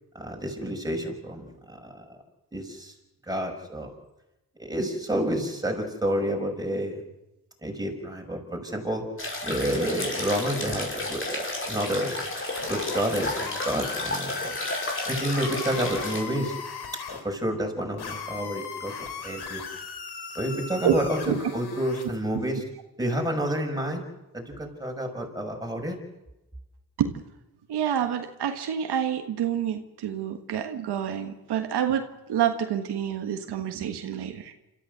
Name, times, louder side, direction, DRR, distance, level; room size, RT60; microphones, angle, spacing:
voice 1, 0.1-2.0 2.5-2.9 3.3-3.9 4.6-7.0 7.6-9.0 9.4-12.2 12.7-14.6 15.1-16.6 17.2-18.9 19.2-19.6 20.3-22.6 23.0-24.0 24.3-26.0, equal, 10° right, 2 dB, 5.8 m, -29 dB
sound 1, 9.2-16.2, left 2 dB, 30° left, 5.7 m, -32 dB
sound 2, 12.6-17.2 18.0-22.2, left 6 dB, 80° left, 3.2 m, -38 dB
voice 2, 27.7-34.5, right 9 dB, 90° right, 6 dB, 1.5 m, -28 dB
27.0 x 13.5 x 8.0 m, 0.97 s
cardioid pair, 65°, 39 cm